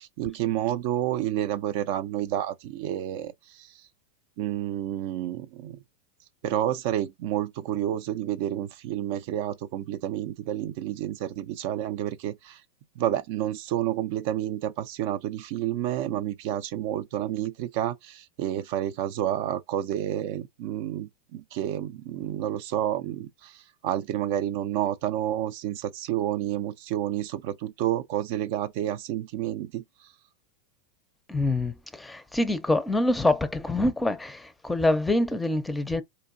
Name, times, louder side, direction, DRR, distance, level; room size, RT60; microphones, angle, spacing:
voice 1, 0.0-3.8 4.4-5.8 6.4-12.6 13.0-30.1, right 12 dB, 60° right, 0.4 m, -30 dB
voice 2, 31.3-36.0, left 2 dB, 10° left, 0.5 m, -25 dB
4.5 x 2.5 x 2.6 m
supercardioid pair, 125°, 0 cm